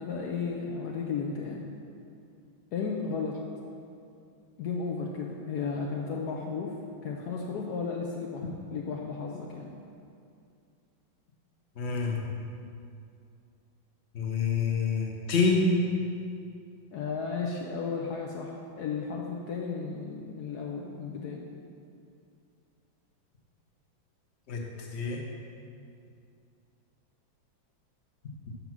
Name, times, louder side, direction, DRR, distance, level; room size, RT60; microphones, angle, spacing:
voice 1, 0.0-1.7 2.7-3.4 4.6-6.8 7.0-9.8 16.9-21.5, left 5 dB, 70° left, 0 dB, 0.9 m, -34 dB
voice 2, 11.8-12.2 14.1-15.6 24.5-24.6 24.9-25.2, left 6 dB, 45° left, 0 dB, 0.9 m, -27 dB
7.2 x 5.3 x 6.0 m, 2.4 s
omnidirectional pair, 2.2 m